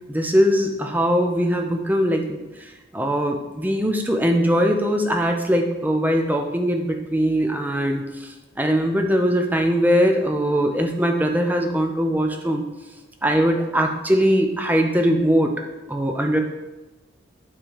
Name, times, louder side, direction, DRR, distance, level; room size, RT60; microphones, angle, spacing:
voice 1, 0.1-12.6 13.2-15.5 15.9-16.4, equal, 10° right, 3 dB, 0.6 m, -21 dB
8.7 x 3.3 x 5.4 m, 1.1 s
head